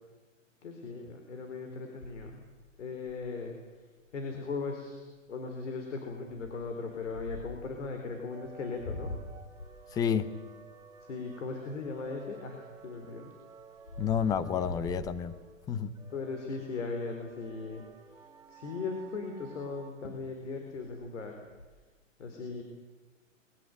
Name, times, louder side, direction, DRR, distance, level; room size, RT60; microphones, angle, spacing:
voice 1, 0.6-2.4 2.8-3.6 4.1-9.1 11.0-13.3 14.6-14.9 16.1-17.8 18.5-21.4 22.2-22.6, left 4 dB, 65° left, 3 dB, 4.3 m, -38 dB
sound 1, 2.0-3.5 4.0-4.1 4.3-4.6 5.1-5.4 6.3-7.7 8.4-12.3 12.8-15.8 16.3-16.6 16.8-16.9 17.2-17.9 19.6-19.7 20.0-20.4 20.7-21.7, left 2 dB, 85° left, 6.8 m, -44 dB
sound 2, 8.3-19.9, right 6 dB, 10° right, 1.8 m, -54 dB
voice 2, 9.9-10.3 14.0-15.4 15.7-15.9, left 7 dB, 10° left, 14 dB, 0.7 m, -29 dB
23.0 x 22.0 x 8.0 m, 1.3 s
hypercardioid pair, 140°, 39 cm